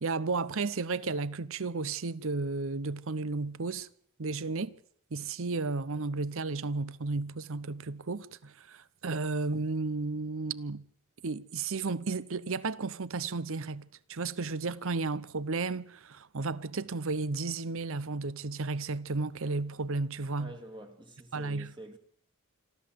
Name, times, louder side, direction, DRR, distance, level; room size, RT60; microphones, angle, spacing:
voice 1, 0.0-3.9 4.2-4.8 5.1-10.8 11.2-20.5 21.3-21.7, right 3 dB, 65° right, 0.8 m, -33 dB
voice 2, 20.4-22.0, right 1 dB, 20° right, 1.8 m, -47 dB
26.5 x 13.0 x 7.7 m
head